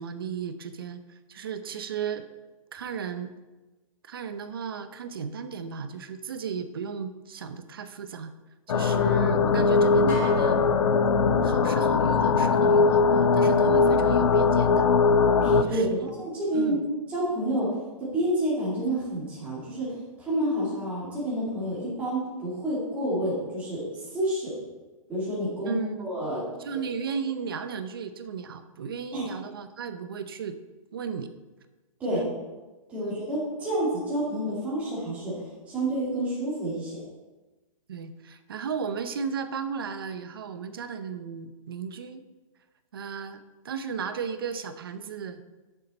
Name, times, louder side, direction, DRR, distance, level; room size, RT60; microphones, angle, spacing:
voice 1, 0.0-2.2 2.7-3.3 4.0-8.3 8.7-10.7 11.4-14.9 15.7-16.1 16.5-16.8 25.7-26.1 26.6-30.5 30.9-31.3 32.1-32.3 33.0-33.2 37.9-42.3 42.9-45.4, right 6 dB, 40° right, 10 dB, 0.6 m, -35 dB
sound 1, 8.7-15.6, left 4 dB, 60° left, 0.6 m, -21 dB
sound 2, 10.1-11.9, right 1 dB, 15° left, 1.9 m, -41 dB
voice 2, 15.4-16.8 17.1-19.9 20.2-24.5 25.1-26.4 26.7-26.8 29.1-29.3 32.0-32.3 32.9-35.4 35.7-37.0, right 1 dB, 5° right, -8 dB, 2.5 m, -29 dB
11.0 x 6.8 x 4.3 m, 1.2 s
hypercardioid pair, 180°, 18 cm